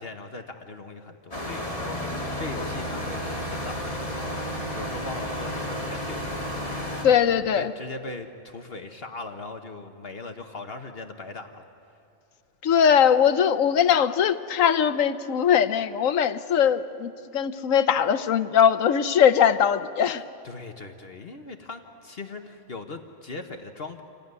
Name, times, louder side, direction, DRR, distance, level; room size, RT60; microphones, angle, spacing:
voice 1, 0.0-7.0 7.5-11.6 20.4-24.0, left 3 dB, 45° left, 6 dB, 1.3 m, -39 dB
sound 1, 1.3-7.0, equal, 25° left, 3.2 m, -32 dB
voice 2, 7.0-7.7 12.6-20.2, left 8 dB, 75° left, 11 dB, 1.2 m, -21 dB
27.5 x 17.5 x 9.5 m, 2.8 s
omnidirectional pair, 1.4 m